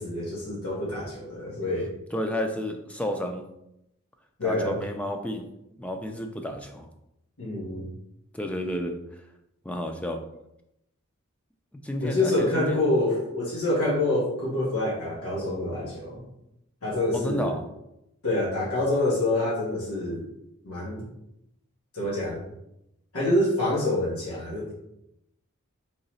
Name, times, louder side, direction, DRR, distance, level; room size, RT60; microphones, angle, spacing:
voice 1, 0.0-1.9 4.4-4.8 7.4-7.9 12.0-16.2 16.8-17.5 18.2-20.2 20.6-21.1 21.9-22.4 23.1-24.7, left 1 dB, 90° left, -5 dB, 1.4 m, -26 dB
voice 2, 2.1-3.4 4.4-5.4 5.8-6.9 8.3-9.0 9.6-10.2 11.8-12.9 17.1-17.7, equal, 5° left, 4 dB, 0.4 m, -31 dB
3.8 x 3.1 x 4.2 m, 0.83 s
head